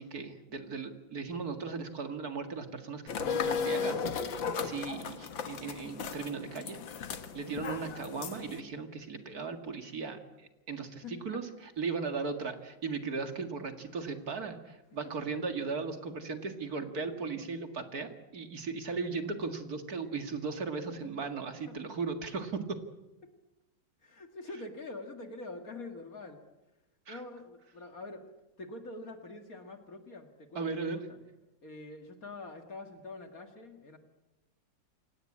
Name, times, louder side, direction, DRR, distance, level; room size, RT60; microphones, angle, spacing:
voice 1, 0.0-4.1 4.6-6.8 7.3-22.8 27.1-27.2 30.5-31.1, right 4 dB, 50° right, 7 dB, 2.4 m, -37 dB
sound 1, 3.1-8.6, left 6 dB, 80° left, 2.2 m, -35 dB
voice 2, 11.0-11.4 21.7-21.8 23.2-23.3 24.0-26.4 27.1-28.3 28.6-31.2 31.6-34.0, left 2 dB, 45° left, 6 dB, 2.3 m, -45 dB
28.0 x 17.5 x 8.6 m, 1.0 s
omnidirectional pair, 2.1 m